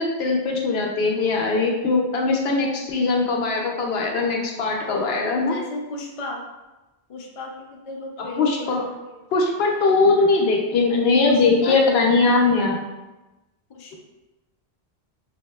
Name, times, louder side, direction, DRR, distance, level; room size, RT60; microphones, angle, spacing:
voice 1, 0.0-5.6 8.2-8.9 9.3-12.8, left 3 dB, 80° left, 1 dB, 0.8 m, -20 dB
voice 2, 4.8-6.4 7.1-8.7 11.2-11.8 12.2-12.6 13.7-14.0, left 3 dB, 50° left, 0 dB, 0.4 m, -35 dB
3.5 x 2.6 x 2.2 m, 1.1 s
omnidirectional pair, 1.1 m